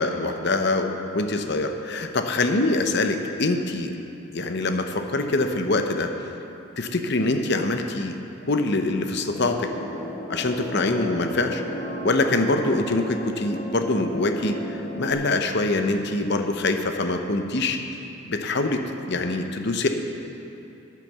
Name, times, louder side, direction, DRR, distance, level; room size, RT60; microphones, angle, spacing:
voice 1, 0.0-3.9 4.3-6.1 6.8-8.2 8.5-9.7 10.3-11.6 12.0-17.8 18.2-18.8 19.1-19.9, left 2 dB, 50° left, 6 dB, 0.8 m, -24 dB
sound 1, 9.3-15.1, equal, 30° left, 1.5 m, -34 dB
11.0 x 9.0 x 6.6 m, 2.8 s
head